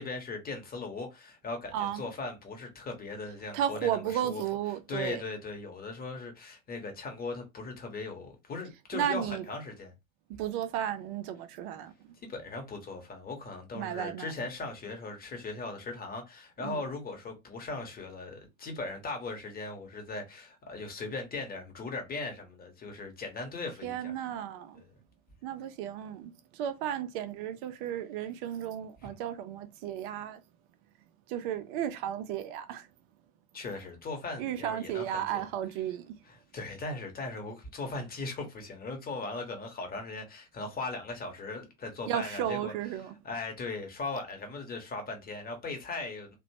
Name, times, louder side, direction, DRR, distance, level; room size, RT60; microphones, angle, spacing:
voice 1, 0.0-4.4 4.9-9.9 12.3-24.1 24.7-24.9 33.5-35.4 36.3-42.7 43.2-46.3, left 3 dB, 20° left, 1.0 m, -39 dB
voice 2, 1.7-2.0 3.5-5.2 8.9-9.5 10.3-11.9 13.7-14.3 16.6-16.8 23.8-24.8 25.4-30.4 31.3-32.9 34.4-36.2 42.1-43.1, right 10 dB, 40° right, 0.5 m, -34 dB
2.8 x 2.2 x 2.7 m
figure-of-eight pair, 85°, 42 cm